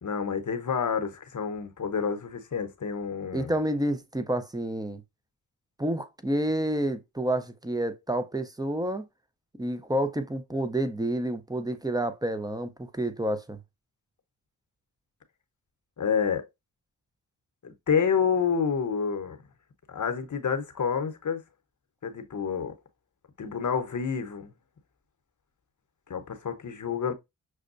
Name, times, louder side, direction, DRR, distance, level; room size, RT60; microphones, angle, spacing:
voice 1, 0.0-3.5 16.0-16.5 17.6-19.4 19.9-21.4 22.0-22.7 23.4-24.5 26.1-27.1, left 6 dB, 45° left, 0.9 m, -28 dB
voice 2, 3.3-5.0 5.8-9.1 9.6-13.6, right 1 dB, 10° right, 0.6 m, -29 dB
6.1 x 2.2 x 2.5 m
cardioid pair, 45°, 40 cm